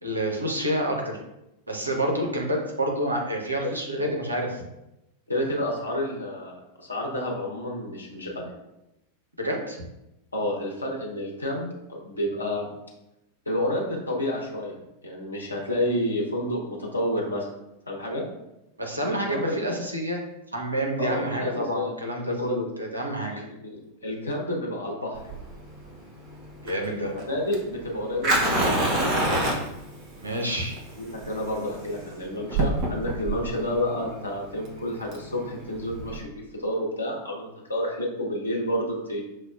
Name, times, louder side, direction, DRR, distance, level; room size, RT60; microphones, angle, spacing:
voice 1, 0.0-1.2 1.7-4.6 9.4-9.8 18.8-20.2 20.5-23.4 26.6-27.1 30.2-30.8, right 1 dB, 80° right, 0 dB, 0.7 m, -28 dB
voice 2, 3.6-4.1 5.3-8.5 10.3-12.7 13.5-14.7 15.0-17.5 17.9-18.2 19.0-19.6 21.0-21.9 22.3-22.6 23.3-25.2 26.9-28.7 31.0-39.2, left 1 dB, 80° left, -1 dB, 0.8 m, -30 dB
Fire, 25.1-36.2, right 1 dB, 35° right, 0.8 m, -28 dB
5.9 x 2.2 x 2.3 m, 0.90 s
figure-of-eight pair, 90°, 0 cm